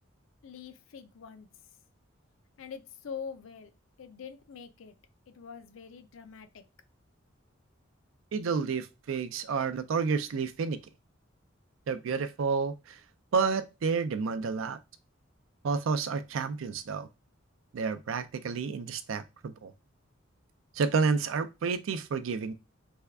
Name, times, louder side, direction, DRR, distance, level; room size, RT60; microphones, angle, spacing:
voice 1, 0.4-1.5 2.6-3.7 4.0-4.9 5.3-6.6, left 6 dB, 85° left, 0.5 m, -44 dB
voice 2, 8.3-10.8 11.9-13.0 13.3-14.8 15.6-17.1 17.7-19.7 20.7-22.5, right 5 dB, 85° right, 0.4 m, -30 dB
3.4 x 2.3 x 3.4 m
head